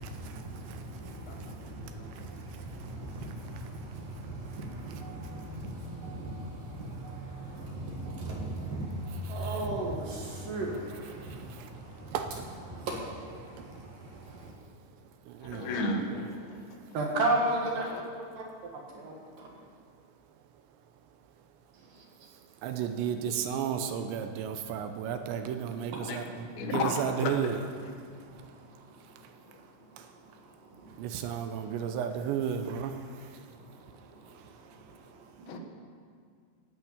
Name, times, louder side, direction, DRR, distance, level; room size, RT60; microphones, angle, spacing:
voice 1, 0.0-12.2 12.7-14.5 16.9-17.9 18.3-18.5 18.9-19.5 21.9-22.0 25.9-26.1 28.5-28.8 29.4-30.3 30.6-31.0 33.5-33.7 34.1-35.6, right 2 dB, 60° right, 2.8 m, -36 dB
voice 2, 1.3-1.6 2.0-2.1 15.4-16.6 17.9-18.0 26.1-26.2 26.6-27.4 35.5-35.6, left 2 dB, 75° left, 3.6 m, -33 dB
voice 3, 12.1-12.4 15.4-15.7 22.6-27.6 31.0-32.9, right 8 dB, 80° right, 2.9 m, -32 dB
14.5 x 9.2 x 8.7 m
omnidirectional pair, 5.3 m